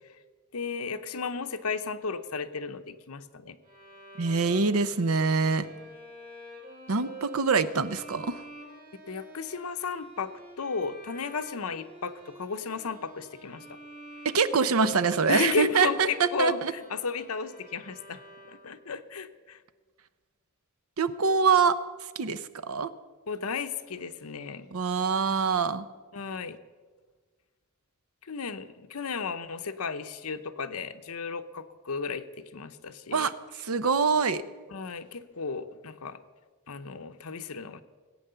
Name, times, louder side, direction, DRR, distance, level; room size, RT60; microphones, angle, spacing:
voice 1, 0.5-3.6 9.1-10.3 10.6-13.8 15.3-18.2 18.5-19.6 23.3-24.7 26.1-26.6 28.2-33.3 34.7-36.2 36.7-37.8, left 5 dB, 80° left, 10 dB, 0.8 m, -34 dB
Bowed string instrument, 3.6-18.9, right 3 dB, 40° right, 3.4 m, -46 dB
voice 2, 4.2-5.7 6.9-8.4 14.3-16.7 21.0-21.8 22.2-22.9 24.7-25.9 33.1-33.3 33.6-34.4, right 5 dB, 75° right, 14 dB, 0.7 m, -25 dB
18.0 x 8.7 x 6.8 m, 1.4 s
head